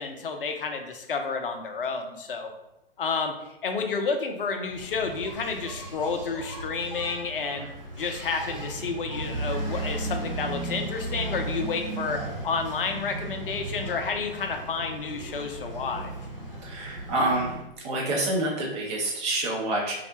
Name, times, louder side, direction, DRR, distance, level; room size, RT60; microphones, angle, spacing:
voice 1, 0.0-2.5 3.0-3.3 3.6-7.7 7.9-16.1, left 5 dB, 65° left, 4 dB, 0.5 m, -30 dB
Engine, 4.7-17.6, right 2 dB, 65° right, 1.0 m, -36 dB
voice 2, 16.6-17.6 17.8-19.9, right 1 dB, 30° right, -3 dB, 0.7 m, -27 dB
2.4 x 2.1 x 2.8 m, 0.88 s
figure-of-eight pair, 115°, 30 cm